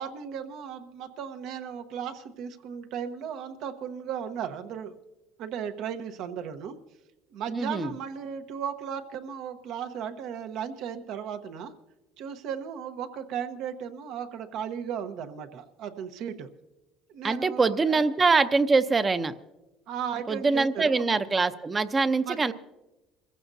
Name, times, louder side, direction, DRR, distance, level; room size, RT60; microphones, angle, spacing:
voice 1, 0.0-5.0 5.4-6.8 7.3-11.7 12.2-16.5 17.1-18.0 19.9-21.1 22.2-22.5, right 8 dB, 70° right, 8 dB, 1.1 m, -36 dB
voice 2, 7.5-7.9 17.2-19.3 20.3-22.5, right 4 dB, 25° right, 11 dB, 0.7 m, -24 dB
26.5 x 15.0 x 2.7 m, 1.0 s
supercardioid pair, 95°, 0 cm